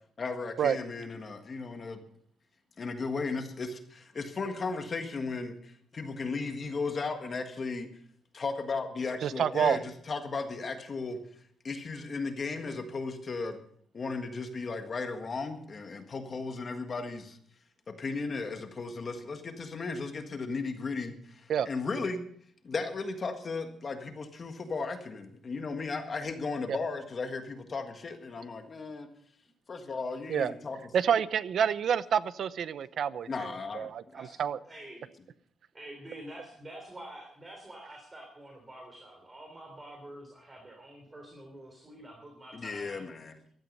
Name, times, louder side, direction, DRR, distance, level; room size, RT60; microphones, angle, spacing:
voice 1, 0.2-2.0 2.8-7.9 8.3-11.2 11.6-13.6 13.9-17.4 17.9-22.2 22.6-29.1 29.7-30.8 33.3-33.9 42.5-43.4, left 4 dB, 35° left, 6 dB, 1.6 m, -35 dB
voice 2, 9.2-9.8 21.5-21.7 26.7-26.8 30.3-30.5 30.9-33.3 33.7-34.0 34.4-34.6, right 8 dB, 60° right, 16 dB, 0.7 m, -27 dB
voice 3, 34.7-35.0 35.8-43.1, right 1 dB, 20° right, 1 dB, 3.4 m, -47 dB
15.5 x 13.0 x 5.4 m, 0.63 s
cardioid pair, 140°, 0 cm